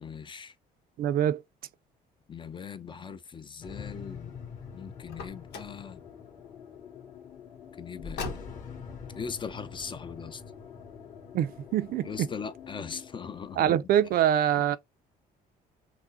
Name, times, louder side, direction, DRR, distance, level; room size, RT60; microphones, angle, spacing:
voice 1, 0.0-0.5 2.3-4.3 4.7-6.0 7.8-8.2 9.2-10.4 12.0-13.8, left 6 dB, 30° left, 0.6 m, -39 dB
voice 2, 1.0-1.4 11.3-12.3 13.6-14.8, right 10 dB, 60° right, 0.5 m, -25 dB
sound 1, 3.6-13.6, left 6 dB, 50° left, 2.0 m, -45 dB
Car, 5.1-5.8 8.0-8.8, left 4 dB, 75° left, 1.3 m, -39 dB
5.9 x 2.1 x 2.6 m
cardioid pair, 110°, 17 cm